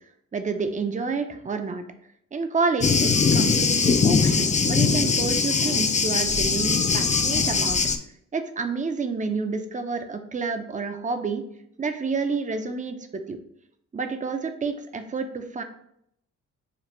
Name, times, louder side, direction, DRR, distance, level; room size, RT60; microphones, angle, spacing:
voice 1, 0.3-1.8 2.3-7.8 8.3-11.4 11.8-13.4 13.9-15.6, right 4 dB, 25° right, 7 dB, 0.6 m, -29 dB
Thunder, 2.8-8.0, left 5 dB, 25° left, 0.4 m, -21 dB
5.1 x 2.4 x 4.3 m, 0.72 s
cardioid pair, 75°, 31 cm